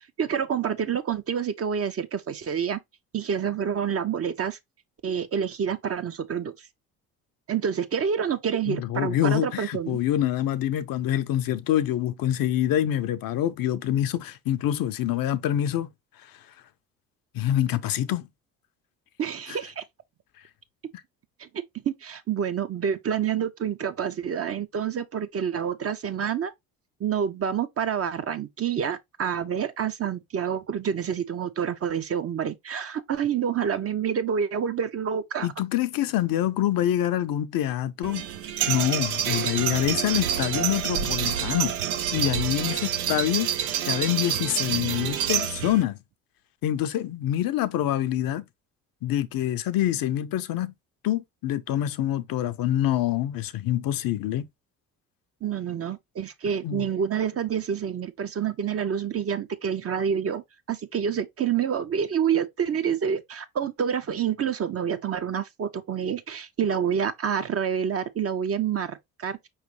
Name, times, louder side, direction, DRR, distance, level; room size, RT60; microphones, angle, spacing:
voice 1, 0.2-2.8 3.1-4.6 5.0-6.7 7.5-10.0 19.2-19.8 21.4-21.5 21.9-26.5 27.0-35.5 55.4-60.4 60.7-69.5, right 8 dB, 35° right, 0.6 m, -28 dB
voice 2, 8.7-15.9 17.3-18.3 35.4-38.2 38.7-41.8 42.1-43.5 43.8-46.0 46.6-48.4 49.0-50.7 51.0-54.5 56.6-56.9, left 12 dB, 55° left, 0.6 m, -26 dB
sound 1, 38.0-45.8, right 9 dB, 90° right, 0.5 m, -27 dB
5.0 x 3.2 x 3.0 m
hypercardioid pair, 50°, 42 cm